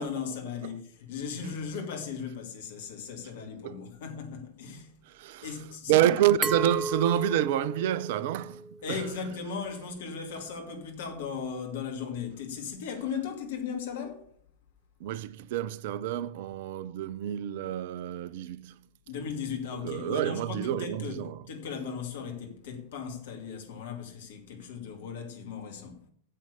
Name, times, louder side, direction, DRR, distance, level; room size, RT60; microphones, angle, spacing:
voice 1, 0.0-4.9 5.4-6.2 8.8-14.2 19.1-26.0, left 6 dB, 55° left, 2.4 m, -37 dB
voice 2, 5.1-5.5 5.9-9.1 15.0-18.7 19.8-21.4, right 12 dB, 50° right, 0.5 m, -28 dB
Glass, 6.4-9.2, right 2 dB, 10° right, 0.7 m, -34 dB
8.8 x 7.7 x 8.5 m
figure-of-eight pair, 90°, 0 cm